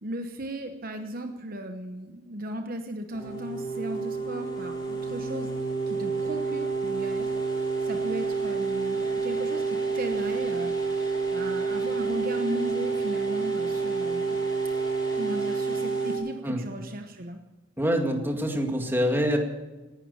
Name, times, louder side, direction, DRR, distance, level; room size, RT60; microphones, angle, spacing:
voice 1, 0.0-7.3 7.8-14.4 15.2-17.4, right 1 dB, 45° right, 6 dB, 0.9 m, -36 dB
sound 1, 3.1-16.2, right 4 dB, 20° left, 4.2 m, -29 dB
voice 2, 17.8-19.4, equal, 10° right, 2 dB, 2.1 m, -25 dB
17.5 x 12.0 x 6.9 m, 1.2 s
head